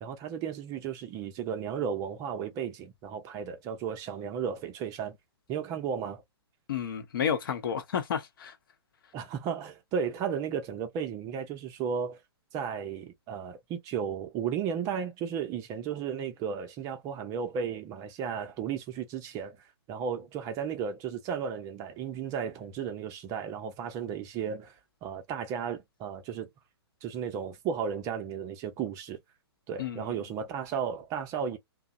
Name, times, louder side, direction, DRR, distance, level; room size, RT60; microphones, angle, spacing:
voice 1, 0.0-5.2 5.5-6.2 9.1-12.2 12.5-19.6 19.9-24.7 25.0-26.5 27.0-29.2 29.7-31.6, right 7 dB, 25° right, 0.6 m, -34 dB
voice 2, 6.7-8.6 29.8-30.2, left 8 dB, 55° left, 0.8 m, -31 dB
2.7 x 2.1 x 2.5 m
figure-of-eight pair, 115°, 14 cm